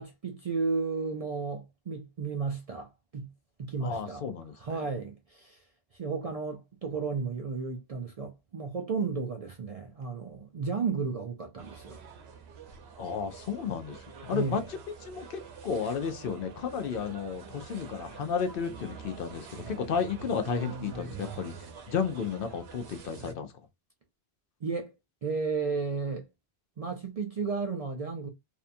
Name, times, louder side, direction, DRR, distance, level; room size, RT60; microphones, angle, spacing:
voice 1, 0.0-3.3 3.6-4.2 4.6-5.6 5.9-12.0 14.3-14.6 24.6-24.9 25.2-26.3 26.8-28.3, right 4 dB, 55° right, 0.4 m, -33 dB
voice 2, 3.8-4.9 13.0-21.5 21.9-23.5, left 6 dB, 65° left, 0.7 m, -33 dB
sound 1, 11.6-23.3, right 5 dB, 90° right, 0.9 m, -45 dB
2.6 x 2.3 x 2.5 m
omnidirectional pair, 1.0 m